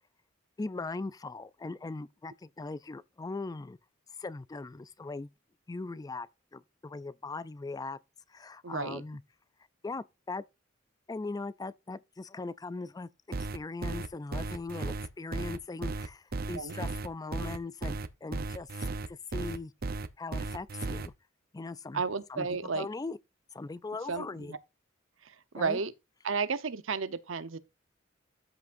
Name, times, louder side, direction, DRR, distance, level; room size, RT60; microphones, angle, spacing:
voice 1, 0.6-3.8 4.2-5.3 5.7-8.0 8.3-9.2 9.8-10.5 11.1-13.1 13.4-19.7 20.2-21.1 21.5-22.0 22.3-23.2 23.5-24.5 25.6-25.8, left 3 dB, 20° left, 0.4 m, -40 dB
voice 2, 8.6-9.0 16.5-16.8 21.9-22.9 24.1-24.6 25.2-25.9 26.2-27.6, right 5 dB, 85° right, 0.9 m, -33 dB
sound 1, 13.3-21.1, right 3 dB, 50° right, 0.7 m, -35 dB
13.0 x 6.0 x 2.6 m
head